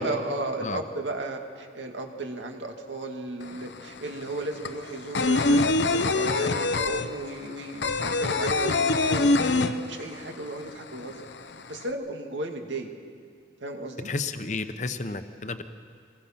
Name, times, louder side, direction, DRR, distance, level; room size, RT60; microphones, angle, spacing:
voice 1, 0.0-5.7 5.9-11.3 11.7-12.9 13.6-14.1, right 2 dB, 85° right, 3 dB, 2.2 m, -34 dB
sound 1, 3.4-3.5 3.8-10.3 10.6-10.7 11.0-11.8, left 3 dB, 70° left, 0.8 m, -24 dB
voice 2, 14.0-15.6, left 3 dB, 40° left, 9 dB, 0.9 m, -32 dB
26.5 x 20.5 x 5.9 m, 2.1 s
head